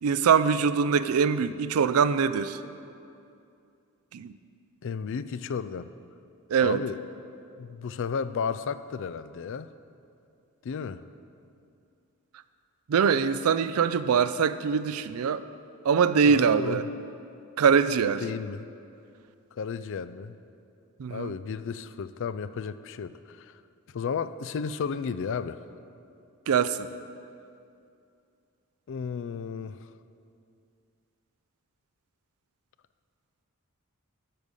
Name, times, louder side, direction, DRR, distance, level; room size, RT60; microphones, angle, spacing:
voice 1, 0.0-2.6 4.1-4.3 6.5-6.8 12.9-15.4 15.8-16.8 17.6-18.2 21.0-21.3 26.5-26.9, right 6 dB, 85° right, 13 dB, 0.4 m, -23 dB
voice 2, 4.8-5.9 6.6-7.0 7.6-9.7 10.6-11.0 16.3-16.8 18.2-18.7 19.5-20.4 21.1-23.6 23.9-25.6 28.9-29.8, left 6 dB, 60° left, 14 dB, 0.4 m, -33 dB
12.5 x 5.3 x 6.4 m, 2.5 s
head